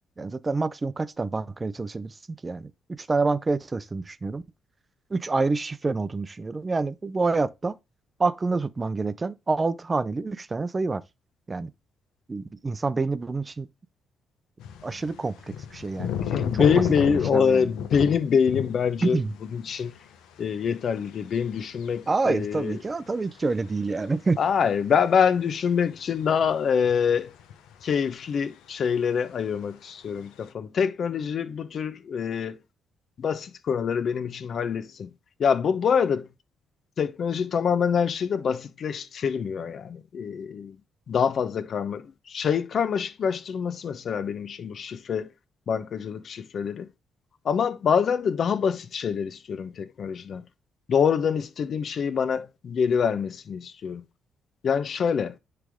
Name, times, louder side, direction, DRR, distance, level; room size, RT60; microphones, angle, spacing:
voice 1, 0.2-2.1 2.4-2.7 3.0-4.4 5.1-7.7 8.2-11.0 11.5-11.7 12.3-13.7 14.8-16.7 17.1-17.7 19.0-19.3 22.1-24.4, right 3 dB, 25° right, 0.6 m, -27 dB
sound 1, 14.6-19.0 19.3-23.4 24.1-24.2 25.4-25.5 26.0-26.5 26.8-27.8, left 8 dB, 90° left, 1.0 m, -32 dB
voice 2, 16.2-19.2 19.5-20.0 20.4-22.8 24.4-27.3 27.8-32.6 33.2-35.1 35.4-36.3 37.0-40.8 41.1-45.3 45.7-46.9 47.4-50.4 50.9-54.0 54.6-55.3, left 7 dB, 55° left, 0.9 m, -25 dB
9.9 x 3.4 x 3.6 m
cardioid pair, 90°, 0 cm